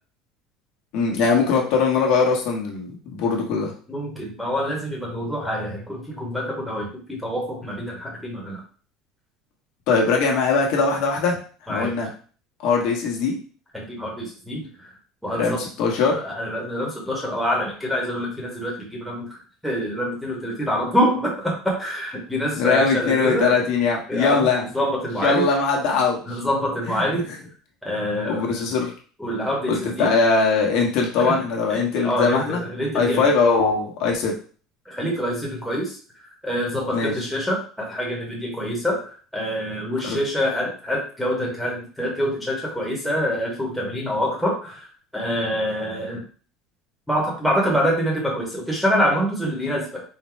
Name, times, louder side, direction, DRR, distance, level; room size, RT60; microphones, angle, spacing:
voice 1, 0.9-3.7 9.9-11.4 11.7-12.1 12.6-13.4 15.4-16.2 22.5-24.6 25.2-26.4 26.9-27.2 28.3-28.9 29.7-32.6 32.9-34.3 36.9-37.1 40.0-40.2, left 4 dB, 60° left, 0 dB, 1.2 m, -21 dB
voice 2, 3.9-8.6 11.7-11.9 13.7-14.9 15.2-15.7 16.1-23.6 24.1-25.5 26.3-27.3 27.8-28.6 29.2-30.1 31.2-31.4 31.7-33.3 34.9-36.0 36.4-44.9 45.1-46.2 47.1-50.0, equal, ahead, -3 dB, 1.0 m, -26 dB
3.8 x 2.2 x 4.4 m, 0.41 s
cardioid pair, 155°, 0 cm